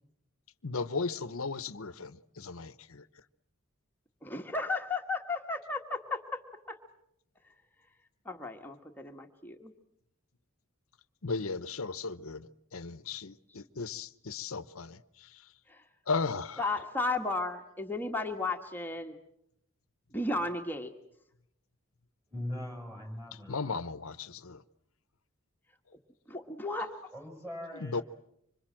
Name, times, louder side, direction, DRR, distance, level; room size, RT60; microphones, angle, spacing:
voice 1, 0.6-3.1 11.2-15.5 16.1-16.6 23.5-24.6 27.7-28.0, left 4 dB, 80° left, 0.9 m, -36 dB
voice 2, 4.2-6.4 6.7-6.8 8.2-9.7 15.7-15.8 16.6-19.2 20.1-20.9 26.3-26.9, left 2 dB, 10° left, 1.5 m, -34 dB
voice 3, 22.3-23.6 27.1-28.0, left 1 dB, 15° right, 5.7 m, -40 dB
26.0 x 25.5 x 7.6 m
head